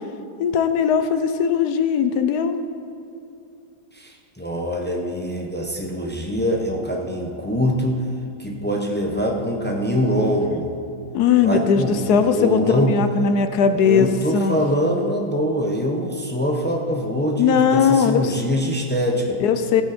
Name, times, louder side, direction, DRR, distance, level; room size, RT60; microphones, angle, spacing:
voice 1, 0.4-2.6 11.1-14.1 14.3-14.6 17.4-18.3 19.4-19.8, left 7 dB, 65° left, 9 dB, 1.1 m, -19 dB
voice 2, 3.9-8.0 8.4-10.7 11.4-12.9 13.7-19.4, equal, 15° left, 0 dB, 0.3 m, -23 dB
16.0 x 8.7 x 4.2 m, 2.6 s
omnidirectional pair, 2.0 m